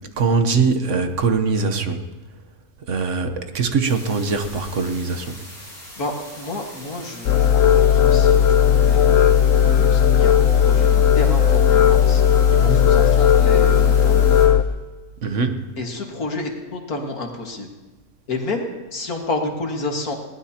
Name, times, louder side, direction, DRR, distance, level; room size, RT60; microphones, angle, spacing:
voice 1, 0.2-2.0 2.9-5.4 12.5-12.8 15.2-15.6, right 4 dB, 60° right, 7 dB, 1.3 m, -22 dB
sound 1, 3.8-14.5, left 1 dB, 25° left, 6.4 m, -41 dB
voice 2, 6.0-10.3 10.7-12.2 12.6-14.2 15.8-17.7 18.3-20.2, left 2 dB, 85° left, 2 dB, 2.3 m, -30 dB
sound 2, 7.3-14.6, left 8 dB, 70° left, 1.0 m, -15 dB
21.0 x 18.5 x 2.9 m, 1.2 s
omnidirectional pair, 1.5 m